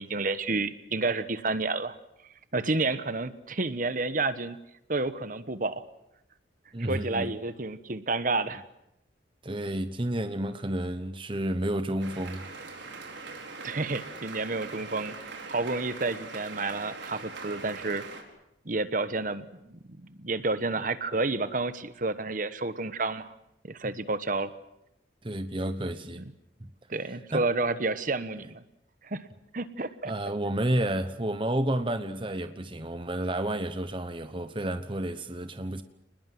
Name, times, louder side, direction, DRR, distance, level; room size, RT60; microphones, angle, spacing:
voice 1, 0.0-2.0 2.5-4.6 4.9-5.8 6.9-8.6 13.6-18.0 18.6-23.3 23.6-24.5 26.9-28.6 29.0-29.3 29.5-30.1, right 3 dB, 45° right, 1.2 m, -30 dB
voice 2, 6.7-7.3 9.4-12.5 25.2-26.2 26.6-26.7 27.3-27.5 30.0-35.8, right 1 dB, 25° right, 1.0 m, -31 dB
sound 1, 12.0-18.2, right 4 dB, 70° right, 4.7 m, -42 dB
28.5 x 20.5 x 7.8 m
head